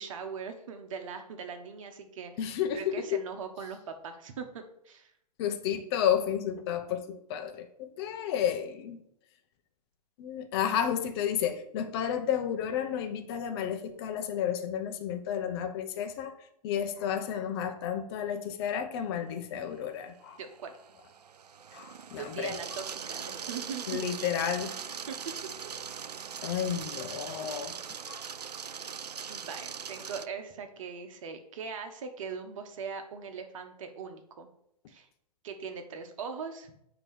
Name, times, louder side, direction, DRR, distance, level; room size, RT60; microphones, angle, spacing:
voice 1, 0.0-5.1 20.4-20.7 22.2-24.0 25.1-25.2 29.3-34.5 34.9-35.1 35.4-36.7, right 6 dB, 50° right, 1.3 m, -40 dB
voice 2, 2.4-3.2 5.4-9.0 10.2-16.3 16.6-20.4 21.7-22.8 23.9-24.7 26.4-27.7 28.1-28.3, left 9 dB, 40° left, 0.8 m, -32 dB
sound 1, 19.7-30.3, right 7 dB, 80° right, 0.4 m, -41 dB
8.9 x 3.1 x 6.3 m
figure-of-eight pair, 110°, 21 cm